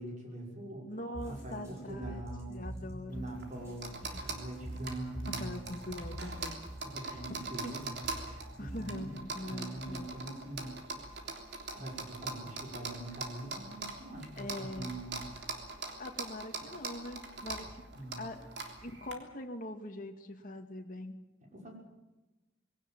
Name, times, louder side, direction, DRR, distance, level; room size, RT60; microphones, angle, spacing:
voice 1, 0.0-0.9 1.2-2.7 3.1-5.6 6.8-10.8 11.7-15.2 17.9-18.3 21.4-21.7, right 1 dB, 40° right, 0 dB, 6.0 m, -43 dB
voice 2, 0.9-2.2 2.5-3.3 4.1-4.3 5.3-6.6 7.0-7.7 8.3-10.1 14.4-14.9 16.0-17.9 18.2-18.5 18.8-21.2, left 1 dB, 45° left, 4 dB, 2.2 m, -43 dB
sound 1, 1.1-9.2, equal, 15° right, 7.4 m, -44 dB
sound 2, 3.1-19.1, right 3 dB, 60° right, 3.4 m, -43 dB
21.5 x 17.5 x 9.1 m, 1.1 s
head